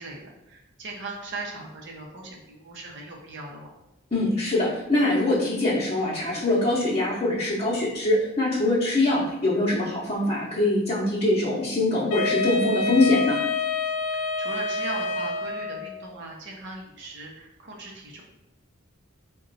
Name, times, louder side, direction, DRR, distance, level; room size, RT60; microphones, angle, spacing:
voice 1, 0.0-3.7 14.1-18.2, right 2 dB, 60° right, 0 dB, 0.7 m, -39 dB
voice 2, 4.1-13.4, left 2 dB, 30° left, -7 dB, 0.8 m, -23 dB
Wind instrument woodwind instrument, 12.1-16.0, left 3 dB, 85° left, 0.4 m, -27 dB
3.9 x 2.2 x 3.9 m, 0.91 s
head